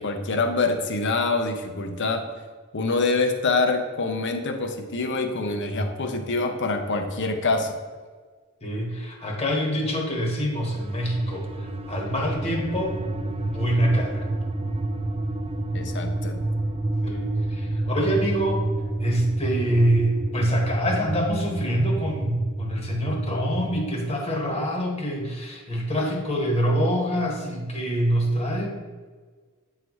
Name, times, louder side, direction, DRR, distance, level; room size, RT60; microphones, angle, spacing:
voice 1, 0.0-2.2 2.7-7.8 15.7-16.4, left 3 dB, 55° left, 5 dB, 0.8 m, -25 dB
voice 2, 8.6-13.0 13.4-14.3 17.0-18.6 19.0-28.8, equal, 30° left, -1 dB, 1.2 m, -25 dB
sound 1, 10.6-23.9, right 2 dB, 25° right, 0.4 m, -29 dB
8.1 x 4.0 x 3.1 m, 1.5 s
head